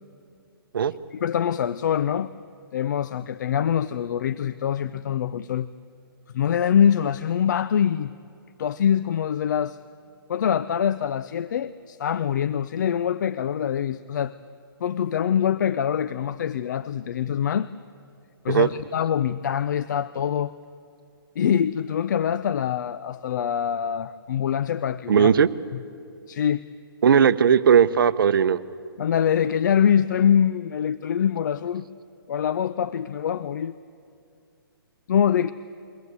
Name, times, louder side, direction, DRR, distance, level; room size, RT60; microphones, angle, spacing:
voice 1, 1.1-2.3 2.7-5.7 6.3-8.1 8.6-9.8 10.3-14.4 14.8-17.7 18.4-20.5 21.4-25.3 26.3-26.6 29.0-31.9 32.3-33.8 35.1-35.5, left 8 dB, 50° left, 15 dB, 0.5 m, -24 dB
voice 2, 25.1-25.5 27.0-28.6, right 7 dB, 65° right, 14 dB, 0.8 m, -17 dB
23.0 x 18.0 x 8.3 m, 2.5 s
hypercardioid pair, 160°, 12 cm